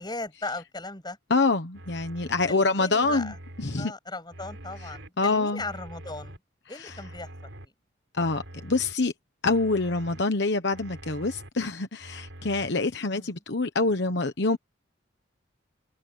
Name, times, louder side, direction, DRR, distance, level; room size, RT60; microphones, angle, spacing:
voice 1, 0.0-1.2 2.5-3.4 3.8-6.4 6.7-7.7 13.1-13.3, left 2 dB, 20° left, 7.1 m, -38 dB
voice 2, 1.3-3.9 4.9-5.6 6.7-7.0 8.2-9.1 9.4-14.6, left 3 dB, 60° left, 1.2 m, -26 dB
sound 1, 1.7-2.5 3.0-3.8 4.3-5.1 5.6-6.4 6.9-7.7 8.1-8.9 9.4-10.2 10.7-11.5 12.0-12.7, right 1 dB, 80° right, 4.4 m, -44 dB
head